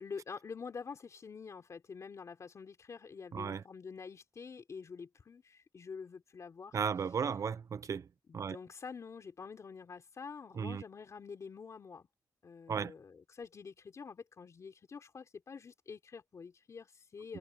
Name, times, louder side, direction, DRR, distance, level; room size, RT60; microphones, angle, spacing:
voice 1, 0.0-6.8 8.3-12.1 12.4-17.4, left 5 dB, 45° left, 3.5 m, -47 dB
voice 2, 6.7-8.0 8.3-8.6 10.6-10.8 12.7-12.9, right 6 dB, 50° right, 0.7 m, -35 dB
wide cardioid pair, 165°, 7 cm